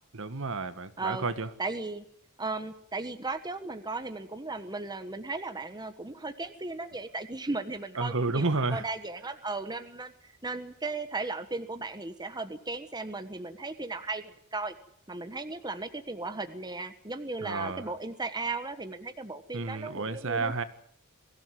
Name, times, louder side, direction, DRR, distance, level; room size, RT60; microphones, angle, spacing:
voice 1, 0.1-1.5 8.0-8.8 17.4-17.8 19.5-20.6, right 3 dB, 65° right, 1.7 m, -31 dB
voice 2, 1.6-2.1 2.4-14.7 15.1-20.5, right 3 dB, 20° right, 1.3 m, -36 dB
23.0 x 16.0 x 9.4 m
head